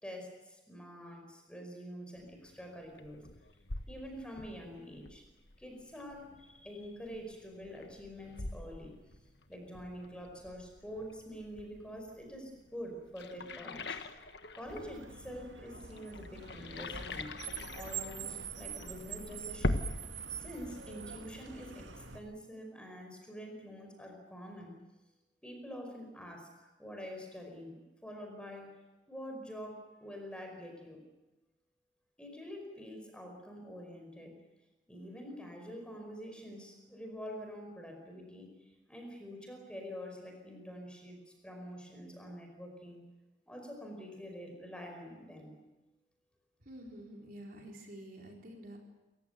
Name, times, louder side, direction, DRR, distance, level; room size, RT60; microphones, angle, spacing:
voice 1, 0.0-3.2 3.9-5.2 5.6-8.9 9.5-14.0 14.5-17.3 17.7-19.8 20.3-24.8 25.4-28.7 29.1-31.0 32.2-34.3 34.9-43.0 43.5-45.6, equal, 5° left, 3 dB, 5.0 m, -46 dB
sound 1, 2.2-20.0, left 2 dB, 65° left, 1.5 m, -43 dB
Car, 14.7-22.2, right 6 dB, 85° right, 2.2 m, -45 dB
voice 2, 46.6-48.8, right 1 dB, 50° right, 0 dB, 4.3 m, -48 dB
28.0 x 16.0 x 9.3 m, 1.1 s
head